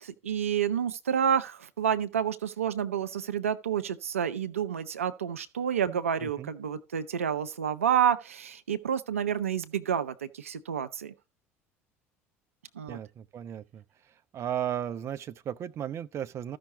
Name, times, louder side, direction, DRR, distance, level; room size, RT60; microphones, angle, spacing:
voice 1, 0.0-11.1 12.8-13.0, right 8 dB, 80° right, 0.6 m, -29 dB
voice 2, 5.9-6.5 12.9-13.8 14.3-16.6, right 10 dB, 40° right, 0.6 m, -35 dB
14.0 x 5.7 x 3.9 m
figure-of-eight pair, 65°, 7 cm